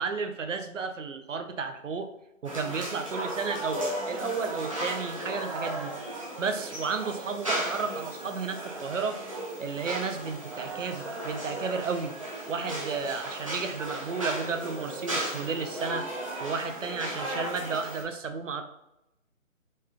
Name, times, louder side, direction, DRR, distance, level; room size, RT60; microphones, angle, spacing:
voice 1, 0.0-2.1 2.4-5.9 6.4-9.2 9.6-12.1 12.5-16.1 16.4-18.6, right 5 dB, 65° right, 7 dB, 0.6 m, -33 dB
sound 1, 2.4-18.0, right 1 dB, 25° right, 0.7 m, -35 dB
4.8 x 2.2 x 2.8 m, 0.86 s
hypercardioid pair, 170°, 41 cm